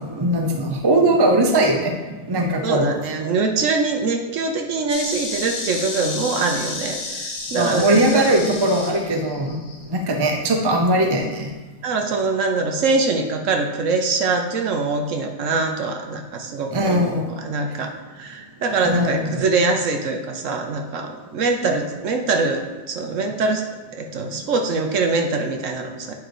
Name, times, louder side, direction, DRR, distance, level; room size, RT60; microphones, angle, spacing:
voice 1, 0.0-2.9 7.5-9.6 9.9-11.5 16.7-17.3 18.8-19.4, right 1 dB, 40° right, 2 dB, 0.3 m, -20 dB
voice 2, 2.6-8.2 11.8-23.7 24.0-26.1, right 3 dB, 60° right, 3 dB, 1.0 m, -23 dB
Insect, 4.9-9.9, left 3 dB, 55° left, 1.3 m, -31 dB
8.9 x 3.9 x 4.7 m, 1.2 s
omnidirectional pair, 1.7 m